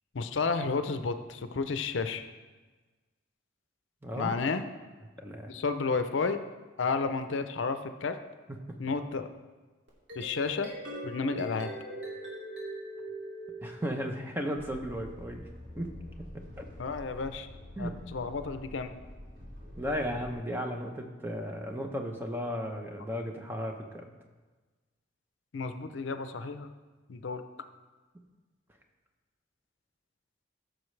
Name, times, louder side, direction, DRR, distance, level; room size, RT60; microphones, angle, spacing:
voice 1, 0.1-2.2 4.2-4.6 5.5-6.4 6.8-8.2 8.8-9.3 10.1-10.7 11.0-11.7 16.8-17.5 17.8-18.9 25.5-26.7 27.1-27.4, left 4 dB, 75° left, 9 dB, 0.6 m, -31 dB
voice 2, 4.0-4.3 5.2-5.6 13.6-15.4 15.8-15.9 16.6-16.7 17.8-17.9 19.8-24.1, equal, 10° right, 2 dB, 0.8 m, -35 dB
sound 1, 9.9-14.2, right 1 dB, 65° right, 2.7 m, -41 dB
sound 2, 14.5-20.4, left 1 dB, 50° right, 1.9 m, -47 dB
15.0 x 6.4 x 3.2 m, 1.3 s
head